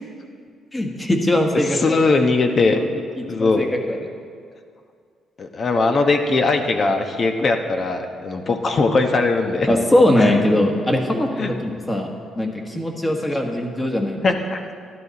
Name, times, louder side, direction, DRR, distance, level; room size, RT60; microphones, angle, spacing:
voice 1, 0.7-2.0 2.8-4.0 9.7-12.1 12.3-14.2, left 1 dB, 15° left, 2 dB, 1.5 m, -21 dB
voice 2, 1.7-2.8 3.2-3.7 5.4-9.7 10.2-10.4 11.4-11.5 14.2-14.6, left 3 dB, 45° left, 5 dB, 1.1 m, -20 dB
13.0 x 11.5 x 4.1 m, 2.2 s
cardioid pair, 90°, 0 cm